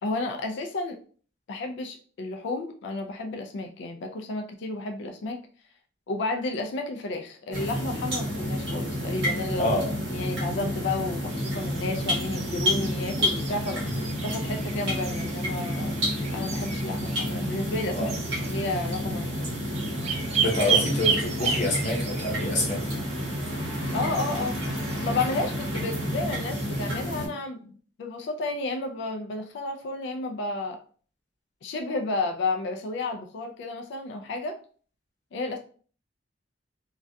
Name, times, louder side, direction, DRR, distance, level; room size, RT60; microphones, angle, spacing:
voice 1, 0.0-1.0 1.5-5.4 6.1-9.8 10.1-16.0 16.3-18.1 18.4-19.3 23.9-24.6 25.0-30.8 31.6-34.6 35.3-35.6, left 2 dB, 65° left, 5 dB, 0.3 m, -32 dB
sound 1, 7.5-27.3, equal, 80° right, 0.9 m, -30 dB
voice 2, 9.6-9.9 18.0-18.1 20.4-22.8, left 2 dB, 40° left, -2 dB, 0.8 m, -27 dB
sound 2, 11.3-26.9, right 6 dB, 35° right, 0.4 m, -34 dB
2.3 x 2.1 x 2.6 m, 0.43 s
head